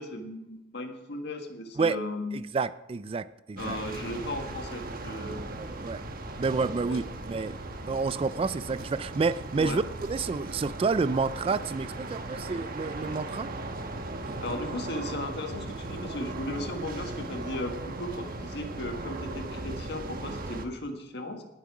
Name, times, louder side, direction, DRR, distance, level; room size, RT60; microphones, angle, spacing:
voice 1, 0.0-2.4 3.6-5.4 6.9-7.0 9.5-9.8 14.4-21.4, left 1 dB, 60° left, 5 dB, 1.7 m, -36 dB
voice 2, 2.3-3.8 5.6-6.0 6.4-7.6 7.9-9.8 10.1-13.5, right 4 dB, 30° right, 16 dB, 0.3 m, -29 dB
sound 1, 3.6-20.7, right 2 dB, 50° right, 1.2 m, -38 dB
19.0 x 7.3 x 4.9 m, 0.90 s
head